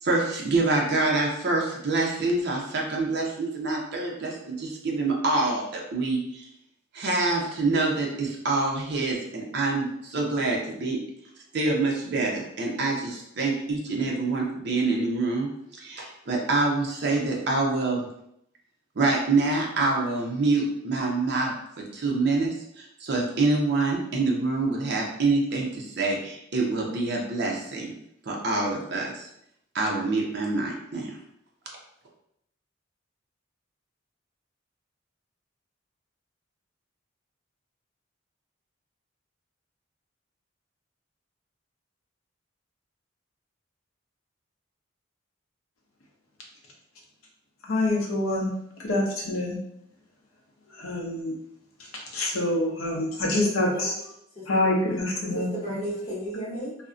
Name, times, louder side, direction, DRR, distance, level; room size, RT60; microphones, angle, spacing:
voice 1, 0.0-6.5 6.9-11.0 11.5-15.5 15.8-18.1 19.0-21.5 21.9-27.9 28.2-29.3 29.7-31.2, right 3 dB, 50° right, -1 dB, 0.5 m, -26 dB
voice 2, 47.7-48.5 48.8-49.6 50.8-51.3 52.1-53.9 54.5-55.5, left 1 dB, 80° left, -1 dB, 0.6 m, -26 dB
voice 3, 52.9-54.0 54.3-55.0 55.3-56.7, right 1 dB, 30° left, -9 dB, 0.8 m, -35 dB
2.5 x 2.0 x 2.4 m, 0.76 s
head